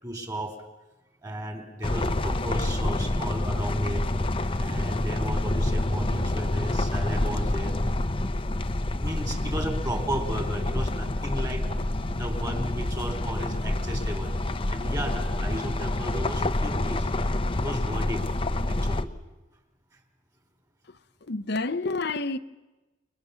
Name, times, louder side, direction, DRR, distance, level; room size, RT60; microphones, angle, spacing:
voice 1, 0.0-0.6 1.2-4.0 4.6-7.8 9.0-11.7 12.1-14.3 14.7-17.1 17.5-18.2 18.7-19.1, equal, 20° right, 3.8 m, -34 dB
sound 1, 1.8-19.0, left 1 dB, 30° left, 0.8 m, -27 dB
voice 2, 20.9-22.4, left 3 dB, 60° left, 0.8 m, -30 dB
30.0 x 21.5 x 7.0 m
head